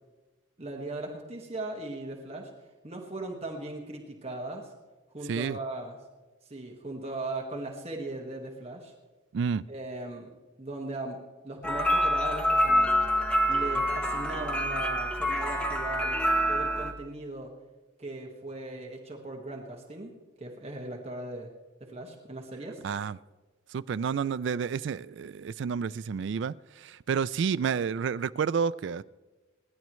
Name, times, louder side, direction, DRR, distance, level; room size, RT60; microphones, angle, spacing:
voice 1, 0.6-2.5 2.8-4.7 5.1-6.0 6.5-8.9 9.7-10.3 10.6-11.2 11.4-12.9 13.5-16.2 16.5-17.5 18.0-21.5 21.8-22.8, right 2 dB, 30° right, 0 dB, 1.6 m, -38 dB
voice 2, 9.3-9.6 22.8-23.2 23.7-29.0, right 6 dB, 65° right, 16 dB, 0.3 m, -30 dB
sound 1, 11.6-16.9, equal, 5° left, 0.9 m, -26 dB
27.5 x 10.5 x 3.1 m, 1.2 s
head